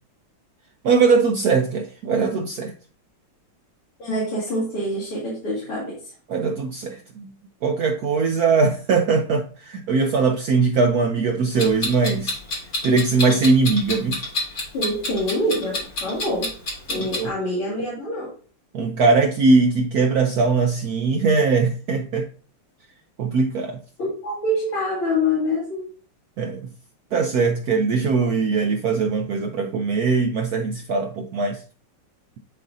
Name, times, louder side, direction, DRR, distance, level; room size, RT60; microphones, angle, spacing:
voice 1, 0.8-2.7 6.3-7.3 7.6-12.3 12.8-14.2 17.0-17.3 18.7-22.2 23.2-23.8 26.4-26.6 27.1-31.6, right 4 dB, 85° right, 0.8 m, -20 dB
voice 2, 4.0-6.0 14.7-16.5 16.9-18.3 24.0-25.8, left 1 dB, 85° left, 3.2 m, -25 dB
Clock, 11.6-17.2, left 2 dB, 50° left, 2.8 m, -28 dB
10.5 x 3.8 x 2.7 m
omnidirectional pair, 2.4 m